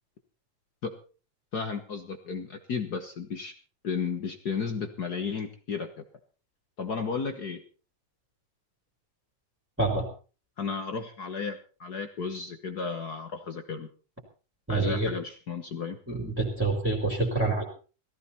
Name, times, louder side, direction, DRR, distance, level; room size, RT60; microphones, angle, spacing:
voice 1, 1.5-3.5 3.8-6.0 6.8-7.6 10.6-13.9 14.7-16.0, left 5 dB, 50° left, 7 dB, 1.2 m, -33 dB
voice 2, 14.7-15.1 16.1-17.6, right 3 dB, 5° right, 0 dB, 3.4 m, -27 dB
18.0 x 15.0 x 4.3 m, 0.37 s
omnidirectional pair, 3.4 m